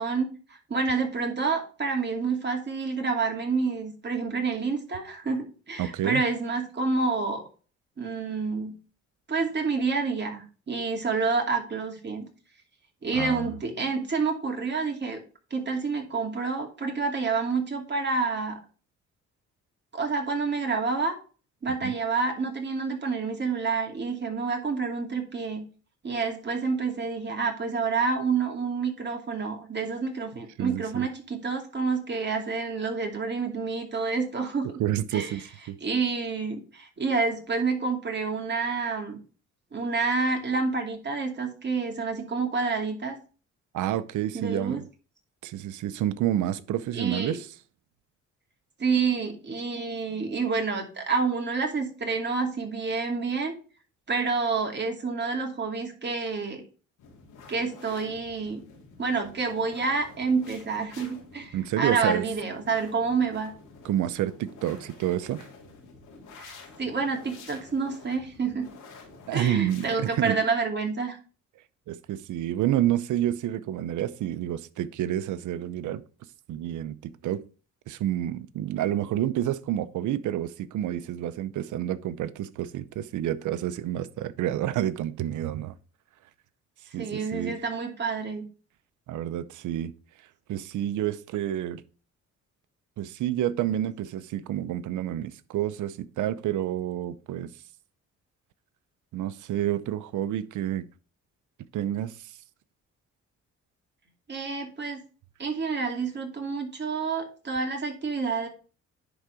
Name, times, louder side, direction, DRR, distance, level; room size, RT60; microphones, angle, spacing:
voice 1, 0.0-7.4 8.0-8.7 9.3-12.3 13.0-15.2 15.5-18.6 19.9-21.1 21.6-25.6 26.0-34.8 35.1-35.4 35.8-39.2 39.7-43.1 44.3-44.8 46.9-47.4 48.8-53.5 54.1-56.6 57.5-58.6 59.0-63.5 66.4-68.7 69.3-71.2 87.0-88.4 104.3-105.0 105.4-108.5, right 4 dB, 35° right, 2.6 m, -28 dB
voice 2, 5.8-6.2 13.1-13.5 21.8-21.9 30.6-31.1 34.8-35.8 43.7-44.8 45.4-47.5 61.5-62.2 63.8-65.5 69.3-70.4 71.9-76.0 76.5-77.4 77.9-85.7 86.9-87.6 89.1-89.9 90.5-91.8 93.0-97.5 99.1-100.9 101.7-102.4, right 12 dB, 75° right, 0.7 m, -29 dB
sound 1, 57.0-70.1, left 3 dB, 85° left, 2.8 m, -49 dB
10.5 x 3.9 x 4.8 m
cardioid pair, 90°, 30 cm